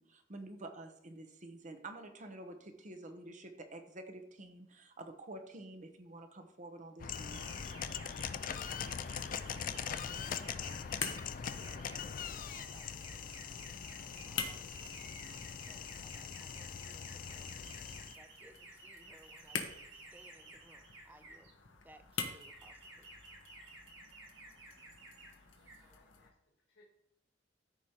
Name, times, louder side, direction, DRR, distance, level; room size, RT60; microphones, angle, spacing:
voice 1, 0.0-7.6, right 2 dB, 45° right, 7 dB, 0.9 m, -49 dB
sound 1, 7.0-18.1, left 7 dB, 45° left, 0.4 m, -42 dB
sound 2, 7.2-21.5 22.1-25.3 25.6-25.9, right 2 dB, 85° right, 1.9 m, -55 dB
sound 3, 7.4-26.3, left 6 dB, 90° left, 1.1 m, -48 dB
voice 2, 9.5-13.6 14.0-15.3 15.7-17.5 18.0-21.5 21.8-23.1, right 1 dB, 10° right, 9 dB, 0.5 m, -63 dB
voice 3, 25.6-26.8, left 2 dB, 70° left, -4 dB, 2.0 m, -68 dB
13.5 x 5.0 x 2.9 m, 0.79 s
head